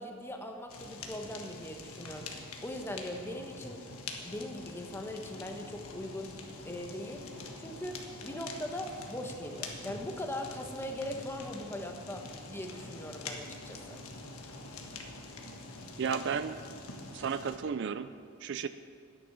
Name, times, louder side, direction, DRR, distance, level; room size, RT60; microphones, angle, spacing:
voice 1, 0.0-2.3 2.6-3.8 4.2-6.4 6.6-7.3 7.6-14.0, left 1 dB, 10° left, 3 dB, 1.0 m, -40 dB
Fire, 0.7-17.6, left 3 dB, 80° left, 1.5 m, -45 dB
voice 2, 16.0-16.6 17.1-18.1 18.4-18.7, right 6 dB, 55° right, 12 dB, 0.4 m, -33 dB
12.5 x 10.0 x 6.1 m, 2.4 s
head